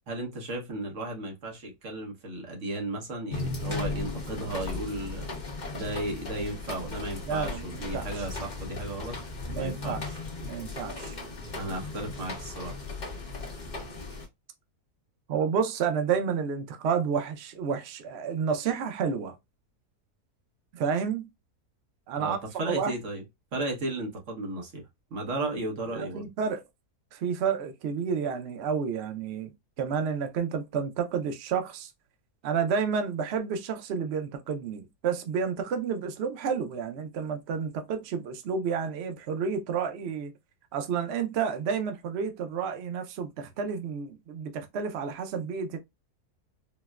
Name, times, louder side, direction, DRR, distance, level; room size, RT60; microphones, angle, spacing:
voice 1, 0.1-5.3 5.7-9.2 9.6-10.1 11.6-12.8 22.1-23.2 23.5-24.8 25.1-26.3, right 2 dB, 55° right, 1.3 m, -34 dB
sound 1, 3.3-14.3, left 3 dB, 35° left, 0.9 m, -37 dB
voice 2, 7.3-8.2 9.5-10.0 10.4-11.2 15.3-19.3 20.7-21.2 22.1-22.4 22.7-22.9 25.9-26.6 27.1-29.5 29.8-31.9 32.4-40.3 40.7-45.8, right 6 dB, 75° right, 0.6 m, -30 dB
4.2 x 2.0 x 2.2 m
omnidirectional pair, 1.6 m